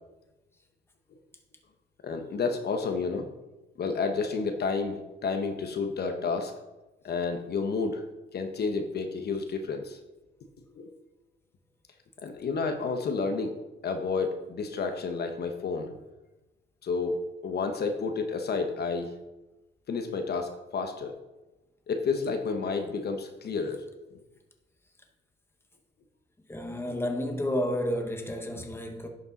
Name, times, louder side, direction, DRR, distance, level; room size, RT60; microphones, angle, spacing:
voice 1, 2.0-3.3 3.8-6.5 7.0-8.0 8.3-10.0 10.8-10.9 12.2-13.5 13.8-16.0 16.8-19.1 19.9-21.2 21.9-24.2, left 4 dB, 55° left, 1.0 m, -30 dB
voice 2, 26.5-29.1, left 1 dB, 10° left, 1.3 m, -31 dB
10.5 x 5.1 x 4.1 m
cardioid pair, 90°, 20 cm